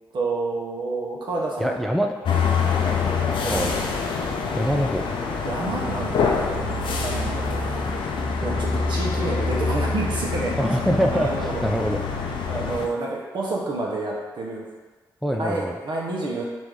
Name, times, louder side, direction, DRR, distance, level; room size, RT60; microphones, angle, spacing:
voice 1, 0.1-1.7 3.0-3.7 5.4-6.5 7.0-7.7 8.0-8.1 8.4-10.5 11.1-11.6 12.5-14.7 15.3-16.4, right 2 dB, 65° right, -3 dB, 0.8 m, -29 dB
voice 2, 1.6-2.1 3.5-3.7 4.0-4.1 4.6-5.1 10.6-12.0 15.2-15.7, equal, ahead, 3 dB, 0.3 m, -24 dB
sound 1, 2.3-12.9, left 4 dB, 70° left, 0.4 m, -25 dB
3.0 x 2.6 x 3.5 m, 1.3 s
supercardioid pair, 45°, 9 cm